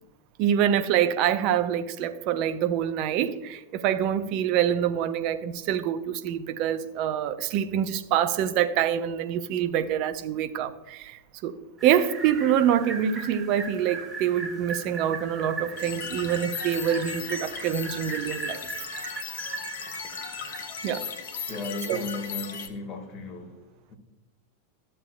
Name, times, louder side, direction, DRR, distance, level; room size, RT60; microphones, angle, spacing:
voice 1, 0.4-11.5 11.8-18.6 20.8-21.1 21.9-22.0, right 9 dB, 40° right, 0.6 m, -26 dB
sound 1, 11.8-20.7, right 3 dB, 15° right, 1.4 m, -38 dB
sound 2, 15.8-22.7, left 6 dB, 55° left, 0.9 m, -37 dB
voice 2, 21.5-24.0, left 3 dB, 35° left, 1.7 m, -36 dB
14.0 x 6.6 x 2.2 m
figure-of-eight pair, 90°, 0 cm